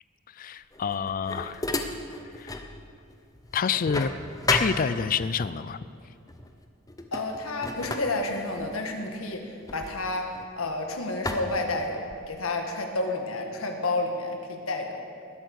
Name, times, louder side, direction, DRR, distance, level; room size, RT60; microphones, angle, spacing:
voice 1, 0.4-1.6 2.4-2.6 3.5-4.1 4.5-5.8, left 6 dB, 40° left, 15 dB, 0.4 m, -27 dB
sound 1, 0.7-2.7 3.1-5.4 6.3-6.5 6.9-10.7 11.2-12.4, left 2 dB, 15° left, 0.8 m, -33 dB
voice 2, 7.1-10.3 10.6-15.0, left 2 dB, 80° left, 3 dB, 1.7 m, -30 dB
20.0 x 8.0 x 6.4 m, 2.6 s
head